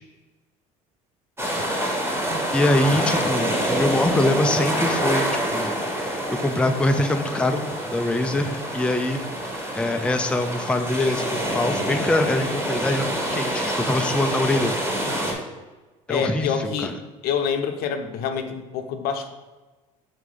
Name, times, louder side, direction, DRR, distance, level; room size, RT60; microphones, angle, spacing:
sound 1, 1.4-15.3, right 1 dB, 15° right, 1.6 m, -26 dB
voice 1, 2.5-5.7 6.0-14.8 16.1-17.0, left 1 dB, 5° left, 6 dB, 0.4 m, -24 dB
voice 2, 16.1-16.9 17.2-19.3, left 6 dB, 65° left, 7 dB, 0.7 m, -26 dB
5.9 x 3.2 x 5.3 m, 1.2 s
supercardioid pair, 85°, 17 cm